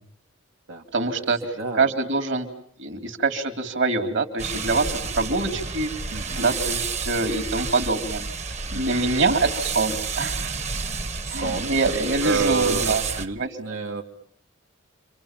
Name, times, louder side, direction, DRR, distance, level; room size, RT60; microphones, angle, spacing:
voice 1, 0.9-1.4 1.8-2.5 2.8-8.2 8.7-10.5 11.3-13.0 13.4-13.5, right 3 dB, 60° right, 6 dB, 2.9 m, -25 dB
voice 2, 1.6-1.9 6.1-6.6 8.7-9.0 11.2-11.9 12.2-14.0, right 4 dB, 90° right, -1 dB, 2.1 m, -29 dB
sound 1, 4.4-13.3, right 5 dB, 35° right, 1.1 m, -30 dB
29.5 x 25.0 x 7.4 m, 0.68 s
head